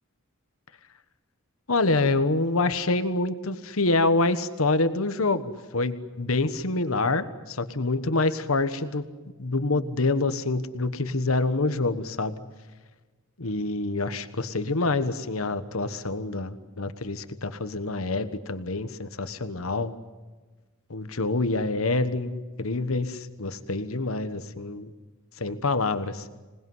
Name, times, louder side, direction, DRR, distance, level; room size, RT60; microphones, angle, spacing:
voice 1, 1.7-9.0 9.4-12.3 13.4-19.9 20.9-24.9 25.4-26.3, left 3 dB, 80° left, 11 dB, 1.3 m, -26 dB
26.5 x 19.5 x 9.5 m, 1.3 s
head